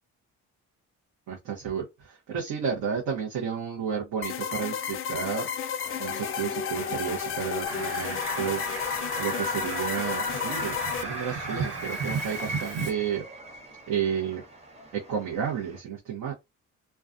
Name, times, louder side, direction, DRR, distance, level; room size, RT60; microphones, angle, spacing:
voice 1, 1.3-5.5 6.0-8.6 9.2-13.2 13.9-14.4 14.9-16.3, right 7 dB, 80° right, 0.9 m, -32 dB
sound 1, 4.2-11.0, left 8 dB, 45° left, 0.4 m, -32 dB
sound 2, 5.8-15.8, right 2 dB, 20° right, 0.9 m, -40 dB
Fowl, 7.6-12.9, right 4 dB, 55° right, 1.3 m, -35 dB
2.3 x 2.2 x 2.5 m
cardioid pair, 90°, 30 cm